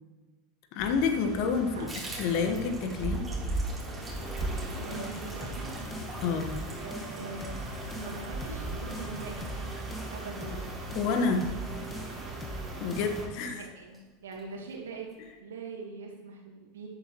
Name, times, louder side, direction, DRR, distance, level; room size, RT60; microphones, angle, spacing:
voice 1, 0.7-1.9 2.2-3.3 6.2-6.6 10.4-10.6 10.9-11.5 12.8-13.6, left 5 dB, 55° left, 6 dB, 1.4 m, -29 dB
sound 1, 0.8-13.3, right 2 dB, 25° right, 4.0 m, -38 dB
Water tap faucet / Bathtub (filling or washing), 1.9-12.8 13.1-13.3 13.6-13.7 13.9-14.4 14.7-14.8 15.1-15.2, right 2 dB, 10° right, 4.0 m, -48 dB
sound 2, 4.0-13.2, equal, 20° left, 1.6 m, -41 dB
voice 2, 4.8-5.7 6.8-7.6 8.0-9.5 10.1-10.6 13.4-15.1 15.4-16.9, right 4 dB, 75° right, -1 dB, 2.1 m, -42 dB
14.0 x 10.5 x 3.1 m, 1.3 s
figure-of-eight pair, 85°, 0 cm